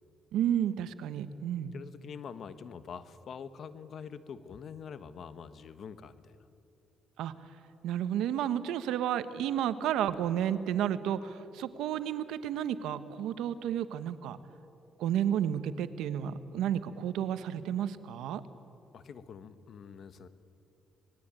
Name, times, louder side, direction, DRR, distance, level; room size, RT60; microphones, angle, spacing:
voice 1, 0.3-1.7 7.2-7.3 7.8-14.4 15.0-18.4, right 10 dB, 85° right, 12 dB, 1.1 m, -31 dB
voice 2, 1.7-6.3 18.9-20.3, left 6 dB, 60° left, 12 dB, 1.3 m, -45 dB
26.0 x 20.0 x 9.0 m, 2.8 s
cardioid pair, 90°, 0 cm